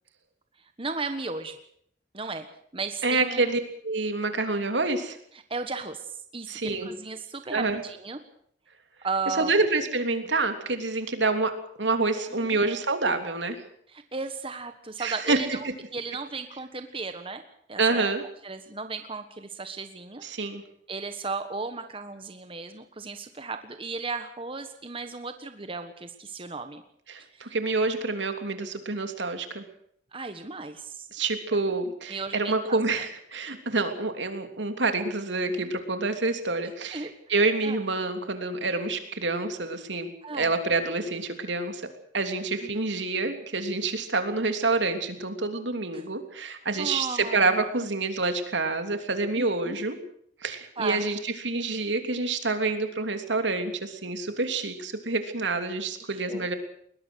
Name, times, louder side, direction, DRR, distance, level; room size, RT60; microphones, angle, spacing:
voice 1, 0.8-1.6 2.1-2.5 2.7-3.6 5.3-8.2 9.0-9.5 12.4-12.6 13.9-17.4 17.7-18.1 18.4-20.2 20.9-26.8 27.3-27.5 30.1-31.1 32.1-32.8 35.6-35.7 36.9-37.1 37.6-37.8 40.2-40.5 42.6-42.8 45.9-46.0 46.8-47.6 49.3-49.8 50.8-51.1 56.1-56.5, right 4 dB, 30° right, 8 dB, 1.4 m, -35 dB
voice 2, 3.0-5.2 6.5-6.9 7.5-7.8 9.3-13.6 15.0-15.4 17.8-18.2 20.2-20.6 27.1-29.6 31.1-41.8 42.1-50.0 50.4-56.5, right 3 dB, 80° right, 7 dB, 3.2 m, -27 dB
21.0 x 21.0 x 6.5 m, 0.65 s
head